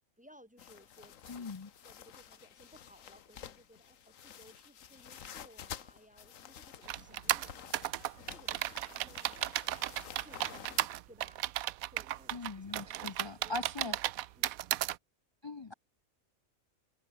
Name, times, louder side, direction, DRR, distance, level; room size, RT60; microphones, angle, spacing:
voice 1, 0.0-1.5 1.8-9.7 10.2-11.4 11.9-14.1 14.3-14.8, equal, 5° right, 4.7 m, -60 dB
sound 1, 0.6-10.9, left 9 dB, 70° left, 1.4 m, -51 dB
voice 2, 1.3-1.7 12.3-14.0 15.4-15.7, left 3 dB, 45° left, 0.3 m, -41 dB
sound 2, 6.9-15.0, right 14 dB, 85° right, 1.1 m, -34 dB
omnidirectional pair, 1.4 m